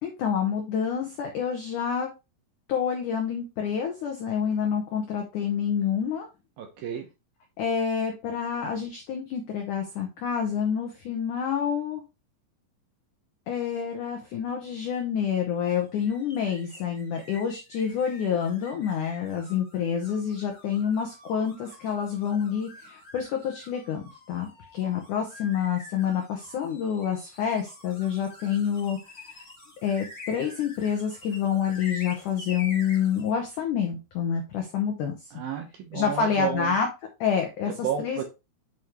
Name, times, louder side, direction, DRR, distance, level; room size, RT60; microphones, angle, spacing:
voice 1, 0.0-2.1 2.7-6.3 7.6-12.0 13.5-29.0 29.8-35.1 35.9-36.9 37.2-37.7 38.0-38.2, left 7 dB, 80° left, 3 dB, 1.8 m, -28 dB
voice 2, 6.6-7.1 35.3-36.8 37.6-38.2, right 8 dB, 75° right, 4 dB, 2.3 m, -31 dB
sound 1, 15.6-33.3, left 2 dB, 60° left, 0.6 m, -47 dB
8.2 x 5.1 x 3.0 m, 0.26 s
omnidirectional pair, 5.1 m